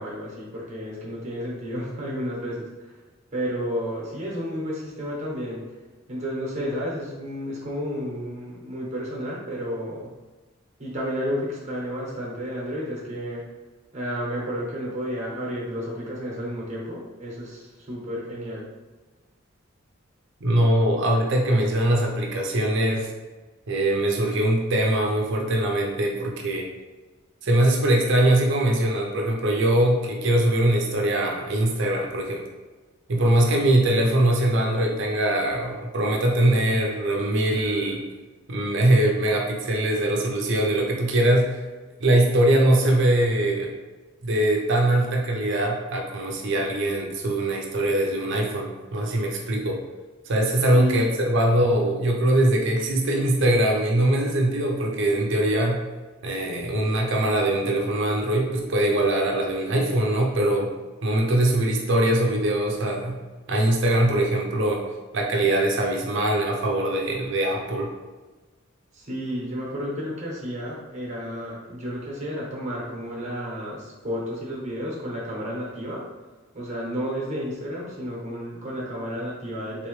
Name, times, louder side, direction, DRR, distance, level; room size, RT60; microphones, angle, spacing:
voice 1, 0.0-3.0 3.3-5.6 6.1-10.1 10.8-13.4 13.9-18.7 50.7-51.1 68.9-76.0 76.5-79.9, equal, 35° right, -4 dB, 1.1 m, -31 dB
voice 2, 20.4-23.1 23.7-26.7 27.4-32.4 33.1-38.0 38.5-41.6 42.0-43.7 44.2-49.8 50.3-55.8 56.2-60.7 61.0-63.2 63.5-64.8 65.1-67.9, right 1 dB, 60° right, 0 dB, 0.6 m, -22 dB
3.5 x 3.0 x 3.1 m, 1.3 s
head